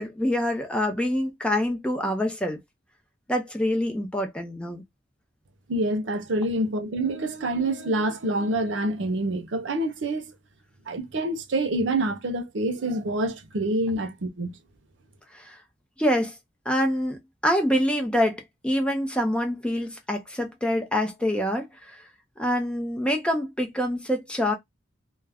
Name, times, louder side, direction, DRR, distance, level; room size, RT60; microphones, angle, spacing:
voice 1, 0.0-2.6 3.3-4.8 15.3-15.6 16.0-16.3 16.7-22.0 22.4-24.5, equal, 5° left, 0.5 m, -26 dB
voice 2, 5.7-10.2 10.9-14.5, right 1 dB, 85° right, 0.6 m, -27 dB
2.3 x 2.1 x 3.4 m
head